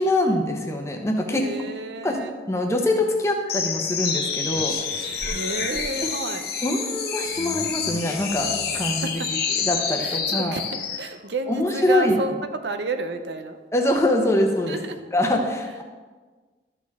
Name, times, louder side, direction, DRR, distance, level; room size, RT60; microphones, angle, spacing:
voice 1, 0.0-1.4 2.0-2.2 2.5-5.2 6.6-10.6 11.5-12.1 13.7-14.8 15.1-15.8, left 1 dB, 15° left, 2 dB, 0.9 m, -24 dB
voice 2, 1.3-2.3 5.3-6.5 8.7-9.3 10.0-13.6 14.6-15.1, right 2 dB, 75° right, 8 dB, 0.7 m, -31 dB
sound 1, 3.5-11.0, left 6 dB, 60° left, 1.2 m, -28 dB
12.5 x 6.8 x 3.6 m, 1.4 s
head